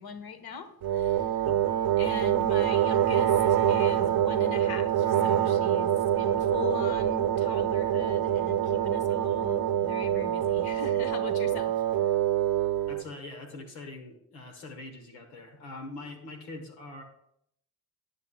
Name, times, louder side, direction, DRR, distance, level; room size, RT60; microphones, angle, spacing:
voice 1, 0.0-1.4 2.0-12.1, left 6 dB, 55° left, 9 dB, 1.2 m, -40 dB
sound 1, 0.8-13.0, right 11 dB, 55° right, 0.7 m, -25 dB
voice 2, 1.4-1.8 12.9-17.0, left 2 dB, 90° left, 4 dB, 1.3 m, -43 dB
20.0 x 7.2 x 2.3 m, 0.72 s
hypercardioid pair, 45°, 44 cm